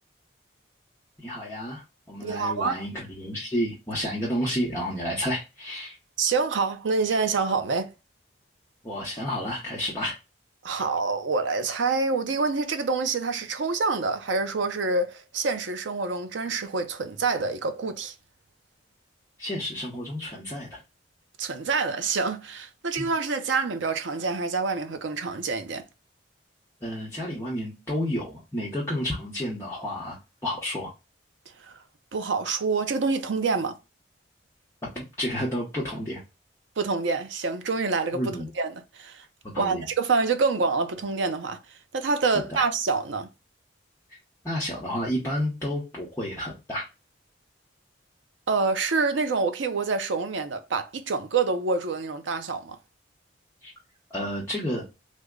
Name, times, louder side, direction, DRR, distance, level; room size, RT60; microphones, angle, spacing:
voice 1, 1.2-1.8 2.1-6.0 8.8-10.2 19.4-20.8 23.0-23.1 26.8-30.2 30.4-30.9 34.9-36.2 38.1-38.5 39.5-39.9 42.3-42.6 44.4-46.9 53.6-53.7 54.1-54.8, equal, 15° left, 0.8 m, -30 dB
voice 2, 2.2-2.8 6.2-7.9 10.6-18.1 21.4-25.8 31.6-31.7 32.1-33.8 36.8-39.2 39.6-41.6 41.9-43.3 48.5-52.8, right 4 dB, 75° right, 0.6 m, -27 dB
3.4 x 2.1 x 3.5 m
head